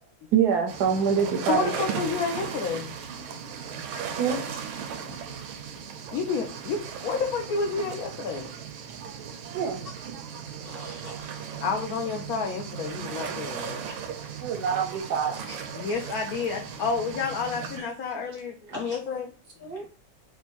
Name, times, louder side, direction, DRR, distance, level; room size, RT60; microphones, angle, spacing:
voice 1, 0.3-1.7 4.2-4.4 9.5-9.8 14.4-15.3 18.7-18.8, right 7 dB, 70° right, 3 dB, 1.0 m, -24 dB
sound 1, 0.7-17.8, right 7 dB, 85° right, 1.4 m, -37 dB
voice 2, 1.5-2.9 4.3-4.4 6.1-8.5 11.6-13.9 15.7-19.3, left 5 dB, 75° left, 1 dB, 0.8 m, -30 dB
voice 3, 10.6-11.6 15.5-15.6 18.7-19.0 19.6-19.9, right 1 dB, 40° left, -4 dB, 0.8 m, -42 dB
4.2 x 2.2 x 3.0 m, 0.39 s
omnidirectional pair, 2.2 m